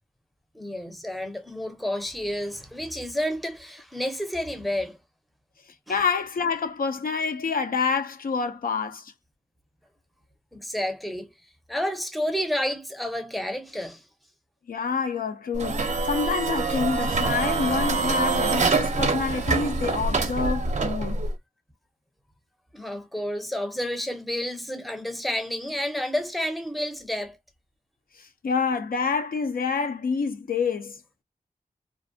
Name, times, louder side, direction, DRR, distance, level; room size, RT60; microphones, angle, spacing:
voice 1, 0.5-5.0 5.9-6.0 10.5-11.3 11.7-14.0 22.7-27.4, left 1 dB, ahead, 0.5 m, -30 dB
voice 2, 5.9-9.1 14.7-21.2 28.2-31.0, left 5 dB, 75° left, 0.5 m, -27 dB
sound 1, 15.5-21.3, right 3 dB, 50° right, 0.5 m, -25 dB
2.5 x 2.1 x 2.6 m
wide cardioid pair, 80°, 15 cm